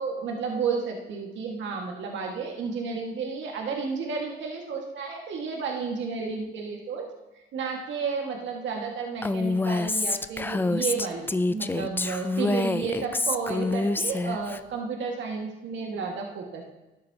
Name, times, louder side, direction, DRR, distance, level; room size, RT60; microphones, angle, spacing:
voice 1, 0.0-7.0 7.5-16.8, right 5 dB, 70° right, 1 dB, 1.8 m, -32 dB
Female speech woman speaking, 9.2-14.6, left 2 dB, 10° left, 0.4 m, -27 dB
13.0 x 10.5 x 2.8 m, 1.0 s
cardioid pair, 90°, 20 cm